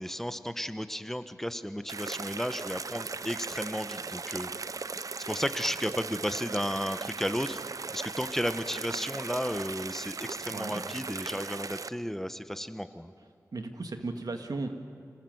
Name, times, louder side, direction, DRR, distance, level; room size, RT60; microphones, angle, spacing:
voice 1, 0.0-4.5 5.3-7.6 7.9-13.1, equal, 5° left, 10 dB, 0.9 m, -33 dB
sound 1, 1.9-11.9, right 4 dB, 65° right, 0.5 m, -38 dB
voice 2, 10.5-10.8 13.5-14.8, right 3 dB, 80° right, 6 dB, 1.8 m, -36 dB
26.0 x 19.5 x 7.8 m, 2.3 s
wide cardioid pair, 75°, 6 cm